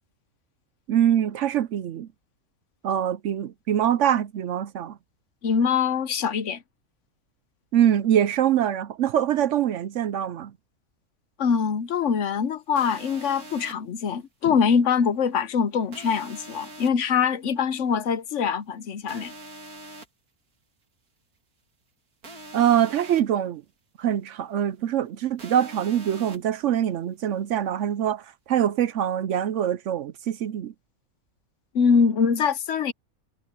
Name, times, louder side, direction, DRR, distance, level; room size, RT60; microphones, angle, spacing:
voice 1, 0.9-2.1 2.8-5.0 7.7-10.5 14.4-14.5 22.5-23.6 24.0-30.7, right 10 dB, 65° right, 0.9 m, -24 dB
voice 2, 5.4-6.6 11.4-19.3 31.7-32.9, left 6 dB, 65° left, 1.1 m, -23 dB
sound 1, 12.8-13.7 15.9-16.9 19.1-20.1 22.2-23.2 25.4-26.4, right 1 dB, 90° right, 2.7 m, -43 dB
omnidirectional pair, 1.5 m